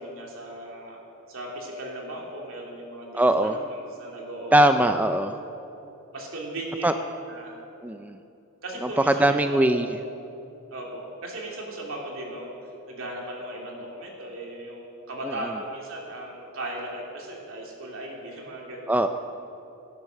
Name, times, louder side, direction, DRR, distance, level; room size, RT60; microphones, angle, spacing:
voice 1, 0.0-5.0 6.1-6.9 7.3-7.6 8.6-9.7 10.7-12.5 12.9-19.0, right 1 dB, 65° right, -2 dB, 3.3 m, -37 dB
voice 2, 3.1-3.5 4.5-5.3 6.8-6.9 7.8-8.2 9.1-9.9 15.3-15.4 18.9-19.1, right 1 dB, 5° right, 7 dB, 0.4 m, -20 dB
18.5 x 10.5 x 6.7 m, 3.0 s
head